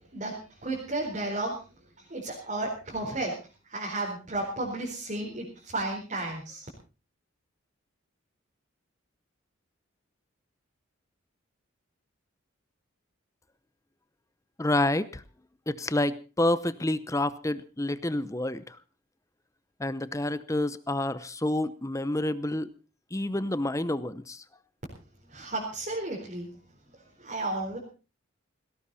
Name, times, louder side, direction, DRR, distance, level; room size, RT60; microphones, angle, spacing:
voice 1, 0.1-1.6 2.0-3.3 3.6-6.7 25.3-26.5 27.0-27.8, right 2 dB, 35° right, -3 dB, 4.4 m, -33 dB
voice 2, 14.6-15.2 15.7-18.8 19.8-22.7 23.1-24.4, left 1 dB, 15° left, 15 dB, 0.7 m, -28 dB
18.0 x 17.5 x 4.2 m, 0.35 s
head